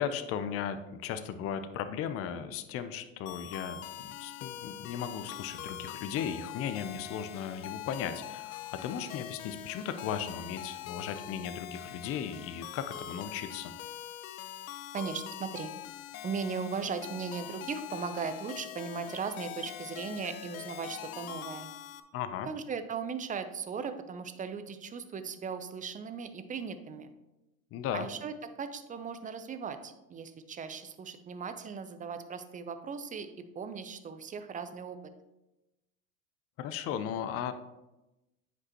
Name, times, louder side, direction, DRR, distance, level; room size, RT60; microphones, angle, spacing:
voice 1, 0.0-13.7 22.1-22.5 27.7-28.1 36.6-37.5, left 8 dB, 35° left, 10 dB, 0.6 m, -36 dB
sound 1, 3.3-22.0, left 11 dB, 90° left, 0.6 m, -43 dB
voice 2, 14.9-15.7 16.2-21.7 22.5-27.1 27.9-33.3 33.5-35.0, right 5 dB, 20° right, 10 dB, 0.6 m, -38 dB
9.4 x 5.2 x 2.9 m, 0.99 s
hypercardioid pair, 100°, 40 cm